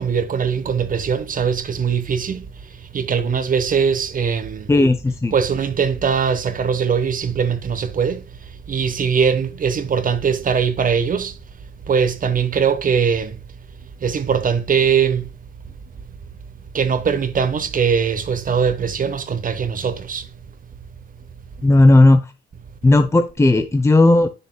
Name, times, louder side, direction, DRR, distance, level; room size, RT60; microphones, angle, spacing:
voice 1, 0.0-4.7 5.3-8.2 8.7-11.4 11.9-13.4 14.0-15.3 16.7-20.3, right 6 dB, 45° right, 1.0 m, -21 dB
voice 2, 4.7-5.3 21.6-22.3 22.8-24.3, left 2 dB, 15° left, 0.7 m, -14 dB
9.6 x 6.6 x 2.2 m
cardioid pair, 90°, 20 cm